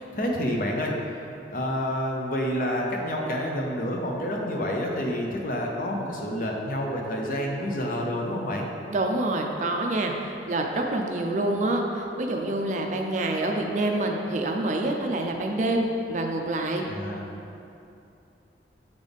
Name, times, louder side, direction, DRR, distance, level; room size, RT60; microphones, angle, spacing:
voice 1, 0.1-0.9 1.5-8.7 16.8-17.2, equal, 50° left, 0 dB, 0.7 m, -28 dB
voice 2, 8.9-16.8, right 2 dB, 40° right, 2 dB, 0.4 m, -27 dB
7.2 x 4.0 x 3.5 m, 2.7 s
head